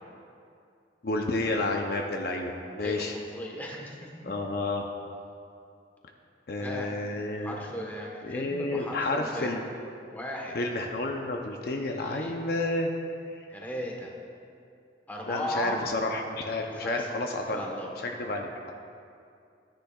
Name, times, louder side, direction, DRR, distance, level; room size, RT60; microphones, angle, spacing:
voice 1, 1.0-3.1 4.2-4.9 6.5-7.7 8.2-9.6 10.5-12.9 13.4-13.5 15.3-17.6 18.0-18.5, left 2 dB, 60° left, 2 dB, 0.6 m, -30 dB
voice 2, 2.8-4.3 6.5-6.9 7.4-9.5 10.1-10.6 11.9-12.4 13.5-14.1 15.1-15.8 16.7-17.1 17.5-17.9, equal, 10° left, -1 dB, 1.2 m, -37 dB
14.5 x 10.0 x 2.4 m, 2.5 s
head